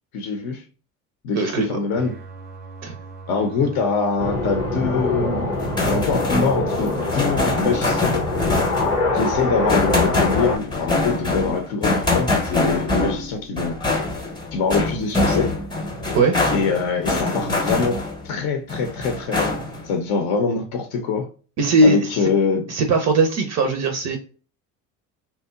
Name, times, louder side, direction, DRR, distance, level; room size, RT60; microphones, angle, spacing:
voice 1, 0.1-0.6 1.2-2.1 3.3-5.5 5.9-8.1 9.1-13.7 14.5-15.5 16.5-18.0 18.2-21.3 21.8-22.6, left 4 dB, 55° left, 0.6 m, -24 dB
voice 2, 1.3-1.8 2.8-2.9 16.1-16.4 21.6-22.1 22.7-24.2, right 2 dB, 40° right, 0.4 m, -19 dB
sound 1, 2.0-6.0, right 3 dB, 90° right, 0.6 m, -40 dB
sound 2, 4.2-10.6, left 2 dB, 90° left, 0.8 m, -24 dB
sound 3, 5.5-18.3 18.7-19.9, left 2 dB, 10° left, 0.7 m, -24 dB
2.7 x 2.2 x 2.2 m
hypercardioid pair, 60°, 46 cm